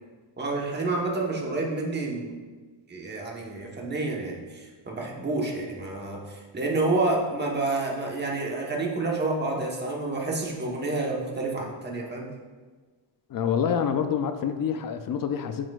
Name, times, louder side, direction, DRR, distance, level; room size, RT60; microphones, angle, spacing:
voice 1, 0.4-2.3 2.9-12.3, right 2 dB, 20° right, -1 dB, 1.1 m, -29 dB
voice 2, 13.3-15.7, left 7 dB, 45° left, 8 dB, 0.5 m, -27 dB
9.5 x 5.9 x 2.4 m, 1.4 s
cardioid pair, 145°, 50 cm